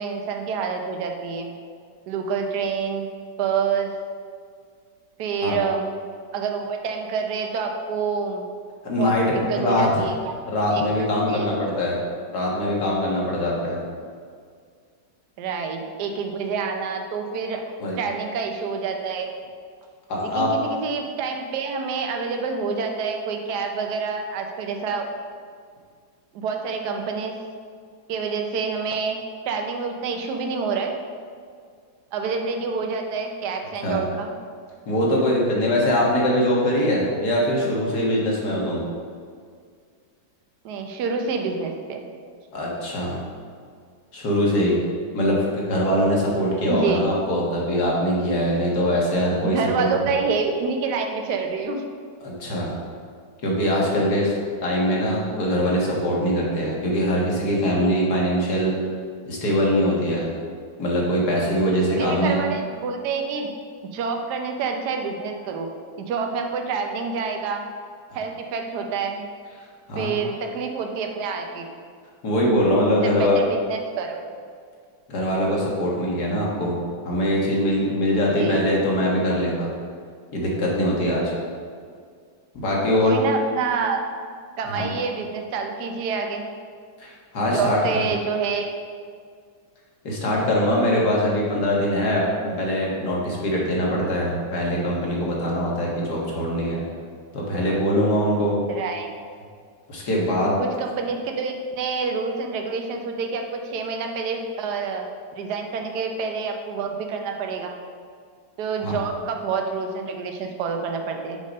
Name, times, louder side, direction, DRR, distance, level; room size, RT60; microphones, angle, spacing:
voice 1, 0.0-1.5 2.1-3.1 3.4-3.9 5.2-5.9 6.3-8.4 9.0-9.1 9.5-10.4 10.7-10.9 11.3-11.5 15.4-17.6 18.0-19.3 20.2-25.1 26.3-27.4 28.1-29.2 29.5-30.9 32.1-34.3 40.6-42.1 46.7-47.0 49.4-51.8 61.9-63.5 63.9-65.7 66.0-67.7 68.1-69.3 70.0-71.7 73.0-74.2 78.3-78.7 83.0-84.0 84.6-86.4 87.5-88.7 98.7-99.1 100.6-105.1 105.3-107.8 108.6-111.4, right 5 dB, 65° right, 3 dB, 1.2 m, -27 dB
voice 2, 8.8-9.9 10.5-12.0 12.3-13.8 17.8-18.0 20.1-20.5 33.8-34.0 34.9-38.8 42.5-43.2 44.1-44.8 45.1-49.9 52.2-52.7 53.4-54.4 54.6-58.8 59.3-60.3 60.8-62.4 69.9-70.1 72.2-73.4 75.1-76.8 77.0-79.7 80.3-81.3 82.5-83.1 84.8-84.9 87.0-87.8 90.0-96.8 97.3-98.6 99.9-100.6 108.8-109.0, equal, 60° left, -4 dB, 2.0 m, -22 dB
6.6 x 5.0 x 5.3 m, 2.1 s
omnidirectional pair, 2.0 m